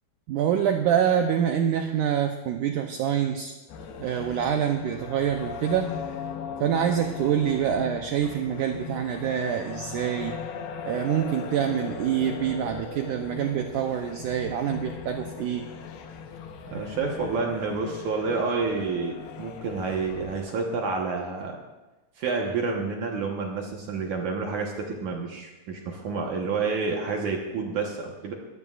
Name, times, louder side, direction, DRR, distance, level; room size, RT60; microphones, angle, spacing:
voice 1, 0.3-3.5 4.0-5.9 6.6-10.4 10.8-15.7, right 9 dB, 85° right, 4 dB, 1.8 m, -26 dB
sound 1, 3.7-20.4, left 6 dB, 75° left, 2.9 m, -38 dB
voice 2, 16.7-21.6 22.2-28.3, right 4 dB, 60° right, 0 dB, 2.3 m, -29 dB
22.0 x 15.0 x 2.5 m, 1.1 s
omnidirectional pair, 4.5 m